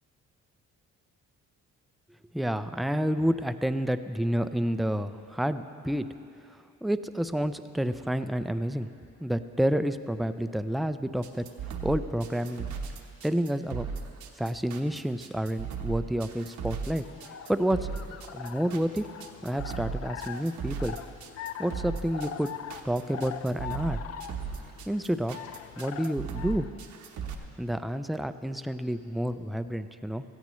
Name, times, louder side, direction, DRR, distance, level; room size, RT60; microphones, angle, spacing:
voice 1, 2.3-6.1 6.8-8.9 9.2-11.4 11.8-12.7 13.2-13.9 14.4-17.0 17.5-17.9 18.3-19.1 19.4-21.0 21.6-22.5 22.8-24.0 24.9-25.4 25.8-26.7 27.6-30.2, equal, ahead, 10 dB, 0.4 m, -29 dB
sound 1, 11.2-27.3, right 6 dB, 75° right, 1.1 m, -37 dB
sound 2, 17.0-26.7, left 9 dB, 55° left, 0.6 m, -42 dB
17.5 x 13.5 x 3.1 m, 2.6 s
cardioid pair, 90°, 30 cm